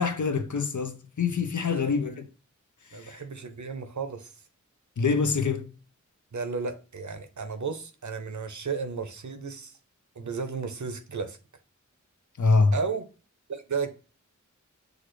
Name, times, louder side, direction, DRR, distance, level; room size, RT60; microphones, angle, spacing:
voice 1, 0.0-2.3 2.8-3.2 5.0-5.7 12.4-12.8, left 4 dB, 70° left, 0.7 m, -25 dB
voice 2, 1.7-2.2 2.9-4.3 6.3-9.7 10.2-11.4 12.7-13.0 13.5-14.0, right 5 dB, 70° right, 0.7 m, -34 dB
6.4 x 2.4 x 3.1 m
wide cardioid pair, 60°, 31 cm